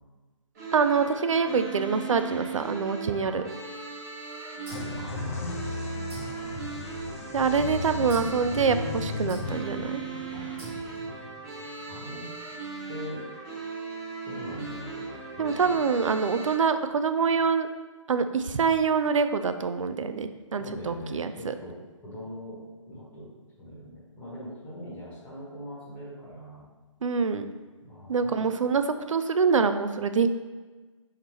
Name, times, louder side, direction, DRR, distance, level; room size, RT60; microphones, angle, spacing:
sound 1, 0.5-16.5, right 4 dB, 30° right, 1.3 m, -38 dB
voice 1, 0.7-3.5 7.3-10.0 15.4-17.7 18.1-21.5 27.0-27.4 28.1-28.8 29.1-30.3, right 5 dB, 75° right, 9 dB, 0.4 m, -25 dB
sound 2, 4.7-12.3, left 4 dB, 25° left, 0.4 m, -37 dB
sound 3, 4.7-5.7 6.1-7.4 8.1-8.5 9.3-9.8 10.6-11.2, equal, 15° right, 1.0 m, -42 dB
voice 2, 4.9-6.2 10.3-10.4 11.9-12.3 12.9-13.3 14.2-15.8 20.6-23.3 23.6-26.6 27.8-28.4, equal, 10° left, -7 dB, 1.1 m, -41 dB
4.4 x 3.6 x 3.1 m, 1.3 s
figure-of-eight pair, 145°, 17 cm